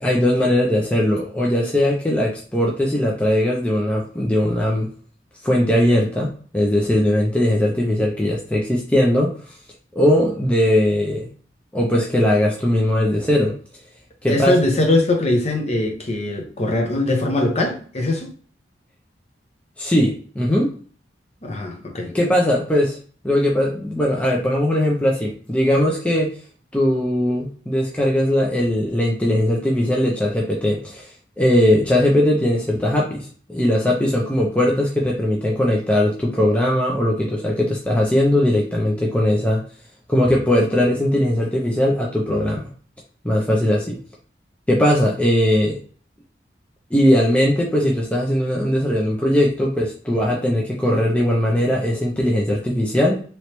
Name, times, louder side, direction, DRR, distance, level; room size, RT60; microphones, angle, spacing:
voice 1, 0.0-4.9 5.4-9.4 9.9-11.3 11.7-13.5 14.2-14.6 19.8-20.7 22.1-23.0 23.2-26.4 26.7-31.1 31.4-39.6 40.1-42.7 43.2-44.0 44.7-45.8 46.9-53.2, left 1 dB, 5° left, 0.4 m, -19 dB
voice 2, 14.3-18.3 21.4-22.1, left 2 dB, 35° left, 0.8 m, -21 dB
3.0 x 3.0 x 3.0 m
head